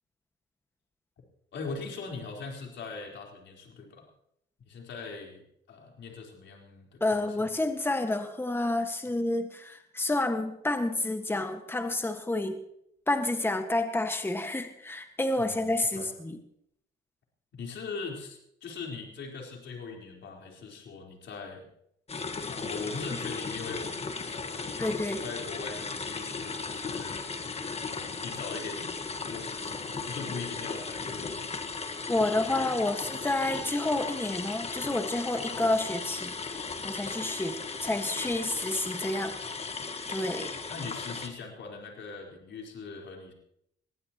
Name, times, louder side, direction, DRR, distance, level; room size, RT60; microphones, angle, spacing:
voice 1, 1.5-4.1 4.6-7.3 15.4-16.1 17.5-21.7 22.5-27.3 27.9-31.5 40.7-43.3, left 4 dB, 65° left, 1 dB, 4.3 m, -41 dB
voice 2, 7.0-12.6 13.1-16.4 24.8-25.2 32.1-39.4 40.1-40.6, left 2 dB, 10° left, 6 dB, 1.7 m, -29 dB
sound 1, 22.1-41.3, left 4 dB, 30° left, 1.6 m, -36 dB
21.5 x 16.0 x 3.0 m, 0.74 s
cardioid pair, 90°, 20 cm